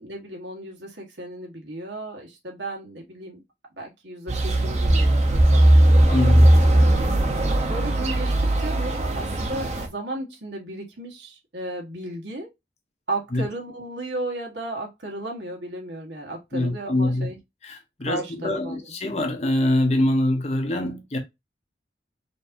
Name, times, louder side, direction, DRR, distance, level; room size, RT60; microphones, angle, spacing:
voice 1, 0.0-3.4 3.8-6.9 7.7-12.5 13.1-17.4 18.0-18.8, right 1 dB, 85° right, 1.4 m, -34 dB
sound 1, 4.3-9.9, right 1 dB, 40° right, 0.8 m, -18 dB
voice 2, 6.1-6.6 13.3-13.5 16.5-17.3 17.6-21.2, left 1 dB, 35° left, 0.8 m, -24 dB
5.1 x 2.7 x 2.6 m
head